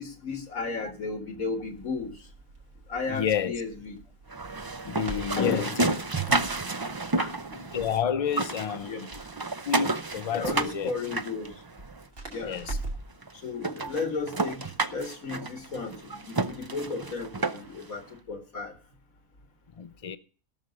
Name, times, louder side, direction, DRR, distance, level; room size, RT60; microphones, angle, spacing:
voice 1, 0.0-2.2 2.9-4.0 5.2-5.7 6.3-6.4 7.2-7.3 8.8-9.0 10.3-11.5 12.3-12.6 13.4-14.6 14.9-18.7, left 4 dB, 80° left, 2.3 m, -34 dB
Crackle, 1.6-13.2, right 2 dB, 70° right, 3.0 m, -44 dB
voice 2, 3.1-3.5 4.8-5.9 7.5-9.2 9.6-10.9 12.4-12.8 19.7-20.2, left 8 dB, 40° left, 0.5 m, -30 dB
sound 1, 4.3-8.0 8.3-12.0 12.7-12.8 13.2-13.3 13.6-17.9, right 3 dB, 30° right, 0.4 m, -31 dB
17.5 x 6.3 x 5.2 m
omnidirectional pair, 1.4 m